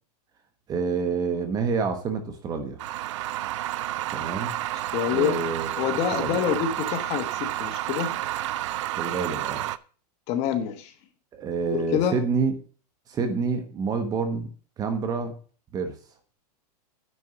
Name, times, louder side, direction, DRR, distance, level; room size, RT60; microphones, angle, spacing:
voice 1, 0.7-2.8 4.1-4.5 5.1-6.6 9.0-9.7 11.3-12.5 13.1-14.5 14.8-15.4 15.7-15.9, right 5 dB, 20° right, 7 dB, 1.1 m, -28 dB
sound 1, 2.8-9.8, right 14 dB, 50° right, 0.5 m, -30 dB
voice 2, 4.9-5.4 5.8-8.1 10.3-10.9 11.7-12.2, left 9 dB, 30° left, 7 dB, 1.3 m, -26 dB
9.8 x 4.5 x 7.8 m, 0.40 s
supercardioid pair, 160°, 20 cm